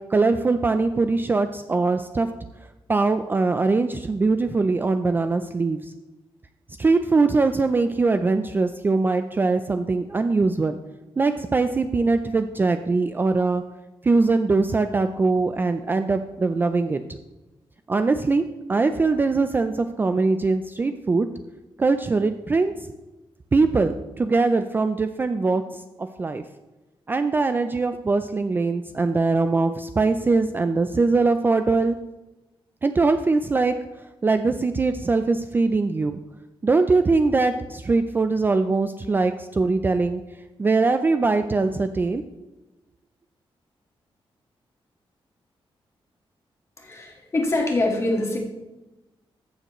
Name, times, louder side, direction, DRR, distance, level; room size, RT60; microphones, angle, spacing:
voice 1, 0.1-2.3 2.9-5.8 6.8-10.8 11.2-13.6 14.0-17.0 17.9-21.3 21.8-22.7 23.5-25.6 26.0-26.4 27.1-32.0 32.8-33.7 34.2-36.2 36.6-40.2 40.6-42.2, right 3 dB, 20° right, 8 dB, 0.3 m, -22 dB
voice 2, 46.8-48.4, left 2 dB, 30° left, 0 dB, 1.6 m, -24 dB
14.0 x 6.8 x 3.0 m, 1.1 s
wide cardioid pair, 165°, 9 cm